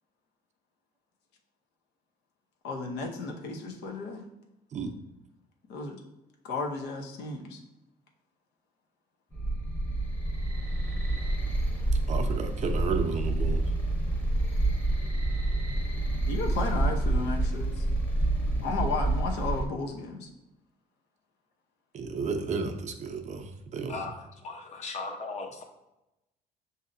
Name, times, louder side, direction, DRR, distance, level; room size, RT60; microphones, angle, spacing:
voice 1, 2.6-4.3 5.7-6.0 6.4-7.6 16.3-17.8 18.6-20.3, left 3 dB, 80° left, 2 dB, 0.8 m, -33 dB
sound 1, 9.3-19.6, right 2 dB, 10° left, 0.9 m, -28 dB
voice 2, 12.1-13.7 21.9-24.0, right 4 dB, 45° right, 5 dB, 0.5 m, -32 dB
voice 3, 24.4-25.6, left 3 dB, 40° left, 3 dB, 0.8 m, -37 dB
6.4 x 2.7 x 2.6 m, 0.93 s
cardioid pair, 110°, 17 cm